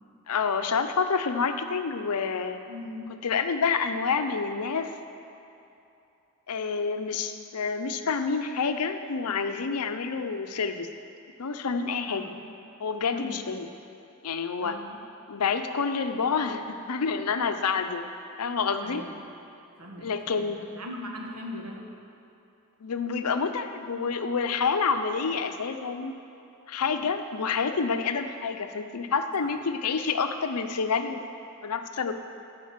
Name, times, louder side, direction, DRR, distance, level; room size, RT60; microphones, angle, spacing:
voice 1, 0.3-2.6 3.2-4.9 6.5-10.9 11.4-12.3 12.8-13.7 14.2-14.8 15.3-18.1 18.4-19.0 20.0-20.6 22.8-26.1 26.7-31.2 31.6-32.1, left 5 dB, 85° left, 8 dB, 0.6 m, -28 dB
voice 2, 2.7-3.1 12.0-12.5 13.1-13.5 14.6-15.0 18.8-19.2 19.8-21.9, left 1 dB, 80° right, 0 dB, 1.4 m, -40 dB
11.5 x 5.1 x 7.4 m, 2.8 s
head